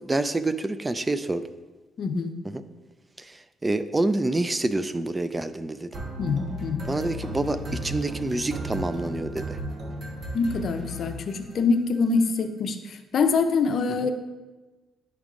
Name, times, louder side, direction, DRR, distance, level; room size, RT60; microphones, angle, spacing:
voice 1, 0.0-1.4 3.2-6.0 6.8-9.6, right 2 dB, 20° right, 12 dB, 0.3 m, -27 dB
voice 2, 2.0-2.4 6.2-6.9 10.3-14.1, left 4 dB, 60° left, 7 dB, 0.6 m, -25 dB
sound 1, 5.9-11.6, equal, 55° right, 1.3 m, -35 dB
10.5 x 3.5 x 3.7 m, 1.2 s
cardioid pair, 90°, 0 cm